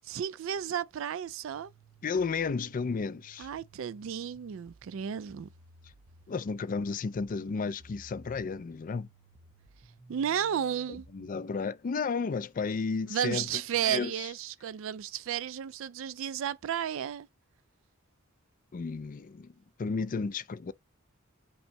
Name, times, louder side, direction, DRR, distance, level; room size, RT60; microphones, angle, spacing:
voice 1, 0.1-1.7 3.4-5.5 10.1-11.1 13.1-17.3, right 9 dB, 70° right, 0.3 m, -33 dB
sound 1, 1.5-11.5, right 2 dB, 50° right, 0.7 m, -57 dB
voice 2, 2.0-3.5 6.3-9.1 11.1-13.5 13.8-14.1 18.7-19.5 19.8-20.7, left 4 dB, 40° left, 0.4 m, -32 dB
5.3 x 2.1 x 4.6 m
head